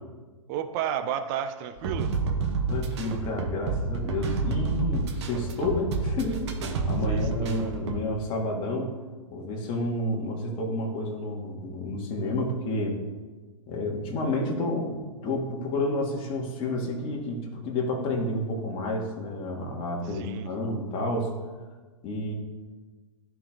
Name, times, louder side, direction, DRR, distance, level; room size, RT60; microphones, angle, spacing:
voice 1, 0.5-2.1 7.1-7.7 20.1-20.5, right 9 dB, 35° right, 8 dB, 0.6 m, -32 dB
sound 1, 1.8-8.0, right 4 dB, 55° right, 1.2 m, -29 dB
voice 2, 2.7-8.9 9.3-13.0 13.7-15.0 15.2-21.3 22.0-22.3, left 1 dB, 30° left, 0 dB, 1.9 m, -30 dB
14.0 x 4.6 x 2.9 m, 1.4 s
hypercardioid pair, 120°, 17 cm